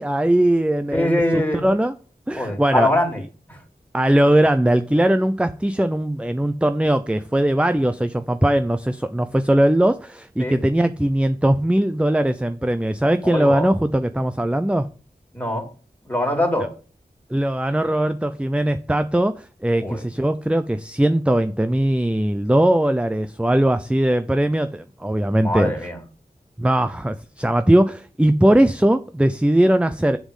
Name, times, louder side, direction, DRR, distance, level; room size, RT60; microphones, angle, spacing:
voice 1, 0.0-1.9 2.3-2.9 3.9-14.9 17.3-25.7 26.6-30.2, right 1 dB, 5° right, 0.6 m, -20 dB
voice 2, 0.9-1.6 2.3-3.2 3.5-3.6 10.4-10.6 13.2-13.7 15.3-15.6 16.0-16.7 19.8-20.0 25.4-26.0, left 1 dB, 10° left, 3.5 m, -22 dB
7.4 x 7.0 x 5.5 m
wide cardioid pair, 55°, 16 cm